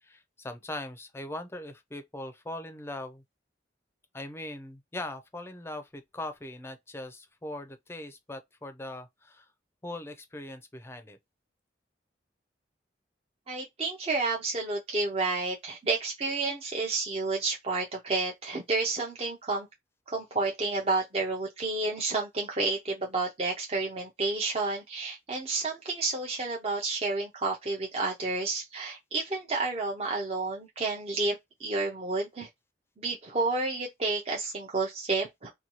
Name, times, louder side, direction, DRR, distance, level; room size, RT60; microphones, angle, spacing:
voice 1, 0.0-3.2 4.1-9.5 9.8-11.2, left 1 dB, 15° left, 0.5 m, -40 dB
voice 2, 13.5-19.7 20.1-32.5 33.0-35.5, right 3 dB, 35° right, 0.6 m, -30 dB
2.7 x 2.3 x 2.9 m
head